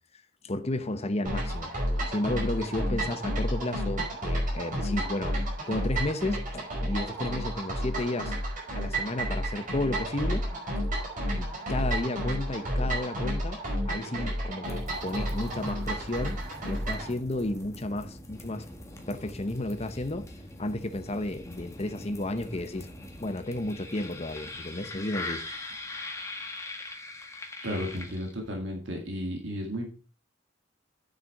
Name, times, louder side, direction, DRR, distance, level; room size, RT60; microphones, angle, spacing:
voice 1, 0.4-1.7 2.1-8.3 8.8-10.5 10.8-10.9 11.3-13.6 13.9-16.4 16.6-18.7 19.1-20.3 20.6-22.9 23.2-25.4, left 1 dB, 35° left, 0.9 m, -32 dB
sound 1, 1.2-17.1, equal, 45° right, 5.5 m, -31 dB
sound 2, 14.7-28.6, left 2 dB, 15° left, 1.6 m, -42 dB
voice 2, 27.6-29.9, equal, 70° right, 2.2 m, -33 dB
9.5 x 6.8 x 4.7 m
head